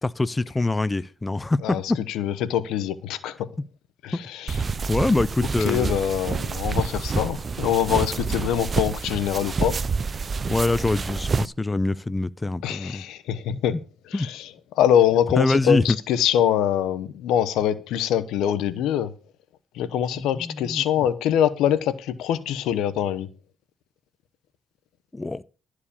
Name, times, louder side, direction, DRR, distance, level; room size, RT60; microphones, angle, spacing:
voice 1, 0.0-2.0 4.9-6.0 10.4-13.0 13.5-13.6 14.1-14.3 15.4-16.0 20.1-20.8 25.1-25.4, left 2 dB, 20° left, 0.5 m, -24 dB
voice 2, 2.1-3.5 4.0-4.6 5.6-9.8 12.6-13.8 14.1-14.5 14.7-19.1 19.7-23.3, left 10 dB, 90° left, 0.9 m, -24 dB
sound 1, 4.5-11.5, right 5 dB, 35° right, 0.5 m, -28 dB
12.5 x 4.8 x 8.6 m
cardioid pair, 90°, 0 cm